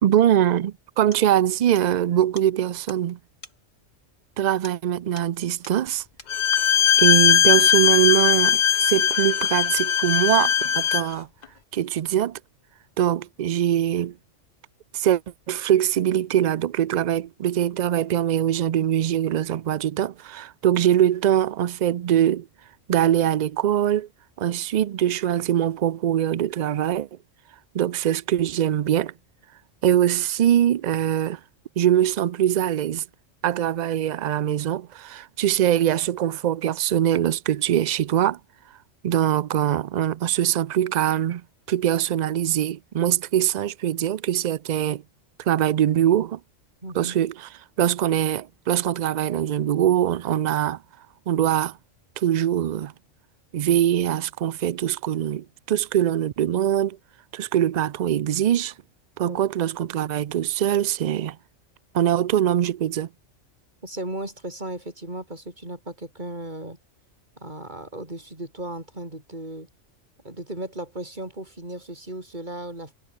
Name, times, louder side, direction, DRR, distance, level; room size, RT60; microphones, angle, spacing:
voice 1, 0.0-3.2 4.4-6.0 7.0-11.3 11.7-12.4 13.0-14.1 14.9-15.2 15.5-22.5 22.9-24.1 24.4-27.1 27.7-29.1 29.8-31.4 31.8-33.0 33.4-38.4 39.0-41.4 41.7-45.0 45.5-46.4 46.9-47.5 47.8-50.8 51.3-51.7 52.2-52.9 53.5-57.0 57.3-58.7 59.2-61.4 61.9-63.1, right 11 dB, 70° right, 0.4 m, -22 dB
sound 1, 0.5-0.6 1.1-1.3 1.8-1.9 2.4-2.5 2.9-3.0 3.4-3.6 4.6-4.9 5.2-5.4 5.6-5.8 6.2-6.4, left 2 dB, 85° left, 7.0 m, -45 dB
Bowed string instrument, 6.3-11.1, left 9 dB, 55° left, 0.5 m, -19 dB
voice 2, 46.8-47.2 59.2-59.4 63.8-66.8 67.4-69.7 70.2-72.9, right 1 dB, 35° right, 5.7 m, -36 dB
omnidirectional pair, 1.3 m